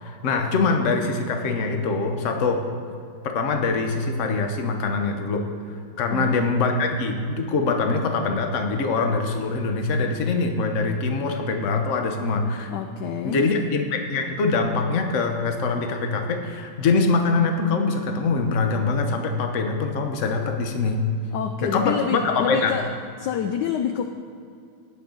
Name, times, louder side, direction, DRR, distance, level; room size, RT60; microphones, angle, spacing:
voice 1, 0.0-2.6 3.2-5.4 6.0-12.7 13.2-21.0 21.6-22.8, left 4 dB, 50° left, 4 dB, 1.0 m, -23 dB
voice 2, 6.1-6.5 12.7-13.5 21.3-22.9 23.2-24.1, left 8 dB, 75° left, 6 dB, 1.0 m, -27 dB
18.0 x 6.5 x 3.9 m, 2.4 s
omnidirectional pair, 2.3 m